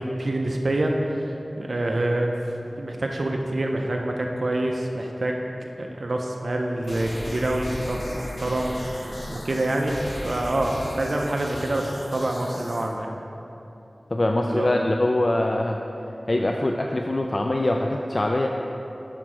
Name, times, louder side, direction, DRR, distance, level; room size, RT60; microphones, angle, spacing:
voice 1, 0.0-2.3 2.8-13.1 14.5-14.7, right 1 dB, 60° right, 1 dB, 0.5 m, -26 dB
sound 1, 6.8-12.8, equal, 80° left, 1.6 m, -36 dB
voice 2, 14.1-15.8 16.3-18.5, left 1 dB, 40° left, 1 dB, 0.3 m, -23 dB
6.2 x 5.9 x 4.7 m, 3.0 s
wide cardioid pair, 75°, 0 cm